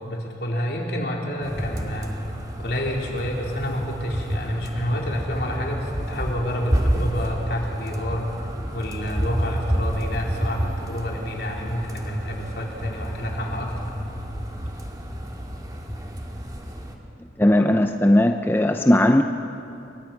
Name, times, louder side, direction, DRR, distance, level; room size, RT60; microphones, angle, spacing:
voice 1, 0.0-2.1 2.6-8.3 8.7-13.7, equal, 60° left, -1 dB, 3.9 m, -29 dB
sound 1, 1.4-17.0, equal, 20° right, 2.0 m, -29 dB
voice 2, 17.4-19.2, left 1 dB, 10° left, 5 dB, 0.6 m, -17 dB
29.0 x 23.5 x 5.9 m, 2.8 s
head